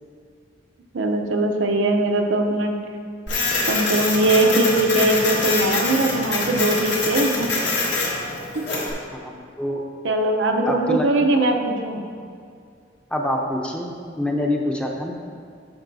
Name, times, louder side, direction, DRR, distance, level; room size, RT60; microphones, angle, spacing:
voice 1, 0.9-2.8 3.7-7.5 8.5-8.6 10.0-12.0, right 1 dB, 85° right, 3 dB, 0.7 m, -21 dB
Printer, 3.3-8.9, left 3 dB, 65° left, 1.5 m, -24 dB
voice 2, 10.6-11.1 13.1-15.1, left 1 dB, 5° left, 0 dB, 0.6 m, -25 dB
13.0 x 5.4 x 2.7 m, 2.2 s
head